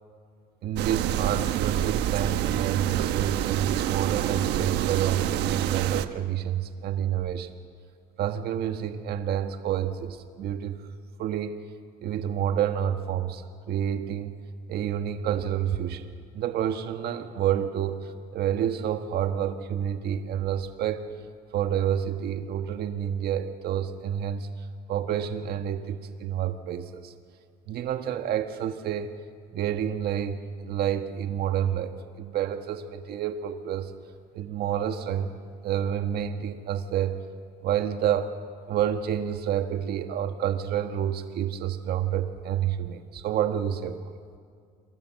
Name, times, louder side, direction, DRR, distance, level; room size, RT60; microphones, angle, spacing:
voice 1, 0.6-7.5 8.2-10.8 11.2-11.5 12.0-14.4 14.7-21.0 21.5-27.1 27.7-29.1 29.5-33.9 34.3-35.3 35.6-37.2 37.6-38.3 38.7-44.1, right 9 dB, 70° right, 7 dB, 1.6 m, -29 dB
sound 1, 0.8-6.1, right 12 dB, 85° right, 1.1 m, -27 dB
29.5 x 23.0 x 7.6 m, 2.2 s
cardioid pair, 110°, 17 cm